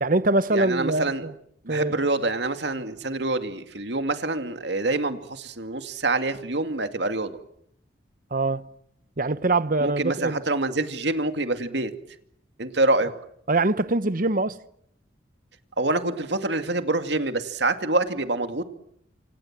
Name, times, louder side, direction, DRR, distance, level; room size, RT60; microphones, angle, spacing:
voice 1, 0.0-1.3 1.7-2.0 8.3-8.6 9.2-10.4 13.5-14.6, right 2 dB, 45° right, 1.0 m, -23 dB
voice 2, 0.5-1.2 1.6-7.3 9.8-11.9 12.6-13.1 15.8-18.6, right 2 dB, 65° right, 2.4 m, -26 dB
27.5 x 27.0 x 7.5 m
head